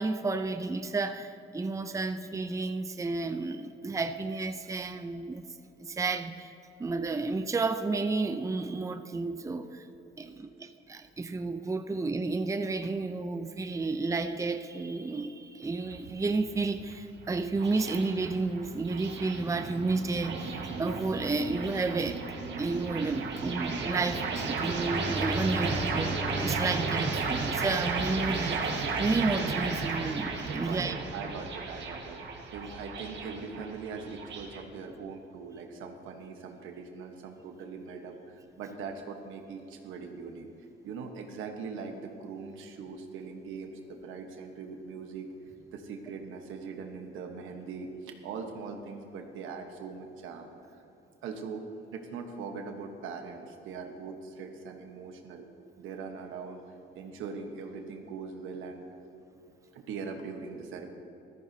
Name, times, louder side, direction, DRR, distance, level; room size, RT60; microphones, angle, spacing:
voice 1, 0.0-5.4 5.8-6.5 6.8-9.9 10.2-22.2 22.6-31.0, right 3 dB, 15° right, 8 dB, 0.5 m, -31 dB
sound 1, 15.6-34.6, right 4 dB, 65° right, 1.6 m, -34 dB
Bowed string instrument, 24.5-28.5, equal, 15° left, 0.8 m, -38 dB
voice 2, 30.6-32.2 32.5-45.3 45.7-50.8 51.2-51.6 51.9-55.5 55.8-56.6 56.9-58.8 59.7-60.9, right 5 dB, 90° right, 4 dB, 1.2 m, -41 dB
14.5 x 13.5 x 2.8 m, 3.0 s
cardioid pair, 90°, 20 cm